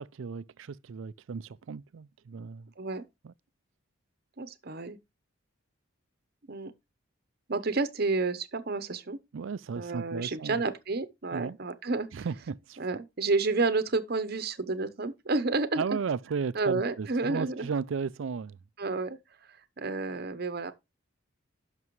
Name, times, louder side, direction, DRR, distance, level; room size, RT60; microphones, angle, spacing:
voice 1, 0.0-2.7 3.2-3.3 9.3-10.6 11.3-11.6 12.1-12.8 15.8-18.6, right 5 dB, 70° right, 0.4 m, -35 dB
voice 2, 4.4-5.0 6.5-6.7 7.5-9.2 9.8-12.3 12.8-16.0 16.5-17.7 18.8-19.2 19.5-20.7, right 3 dB, 50° right, 0.9 m, -30 dB
11.0 x 6.0 x 3.1 m
head